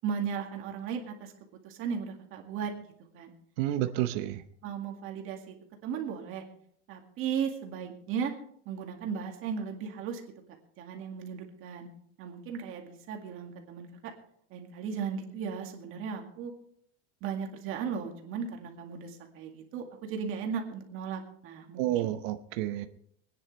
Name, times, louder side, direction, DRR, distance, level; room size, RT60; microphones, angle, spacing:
voice 1, 0.0-1.3 1.6-2.7 3.1-3.3 4.6-5.6 5.8-6.4 6.9-8.3 8.7-10.2 10.8-11.9 12.2-14.1 14.5-16.5 17.2-22.1, right 7 dB, 35° right, 2 dB, 2.1 m, -36 dB
voice 2, 3.6-4.4 21.8-22.9, right 13 dB, 55° right, 9 dB, 0.9 m, -30 dB
25.5 x 9.9 x 3.3 m, 0.66 s
supercardioid pair, 160°, 36 cm